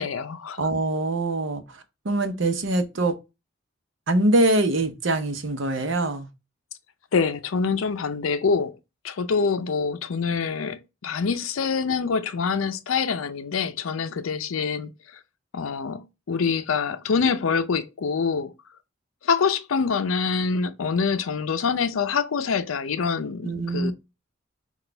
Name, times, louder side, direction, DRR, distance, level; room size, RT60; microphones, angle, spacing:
voice 1, 0.0-0.7 7.1-8.8 9.0-14.9 15.5-18.5 19.2-23.9, left 5 dB, 85° left, 0.5 m, -25 dB
voice 2, 0.6-3.1 4.1-6.3 23.4-23.9, right 2 dB, 70° right, 0.8 m, -24 dB
6.0 x 2.4 x 3.3 m
head